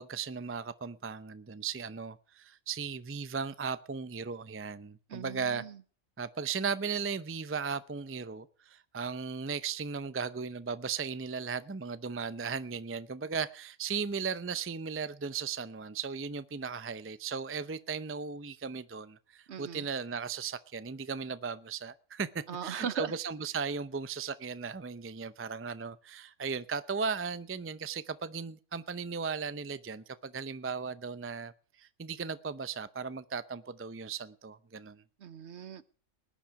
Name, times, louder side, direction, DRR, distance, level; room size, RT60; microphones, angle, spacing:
voice 1, 0.0-5.6 6.2-31.5 31.8-35.0, right 5 dB, 20° right, 0.4 m, -36 dB
voice 2, 5.1-5.8 19.5-19.9 22.5-23.1 35.2-35.8, right 7 dB, 60° right, 1.2 m, -38 dB
19.5 x 10.5 x 4.8 m
omnidirectional pair, 1.4 m